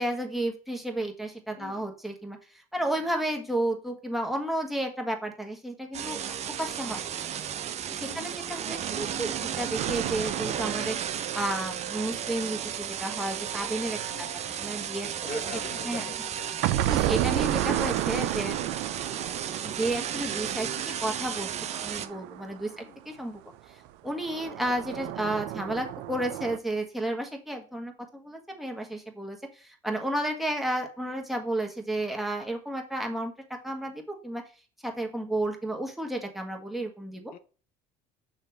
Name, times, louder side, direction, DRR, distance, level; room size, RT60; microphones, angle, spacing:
voice 1, 0.0-7.0 7.9-11.0 11.3-16.1 16.9-18.7 19.6-20.7 21.0-23.4 23.7-34.4 34.8-37.3, right 1 dB, ahead, 1.6 m, -32 dB
sound 1, 5.9-22.1, right 9 dB, 40° right, 0.7 m, -34 dB
voice 2, 8.1-8.4 14.1-14.3 15.2-17.1 22.8-22.9 37.3-37.4, left 10 dB, 60° left, 0.6 m, -45 dB
sound 2, 9.8-12.6 16.6-22.9 24.1-26.6, right 14 dB, 75° right, 0.6 m, -32 dB
6.9 x 3.2 x 5.8 m
supercardioid pair, 100°, 17 cm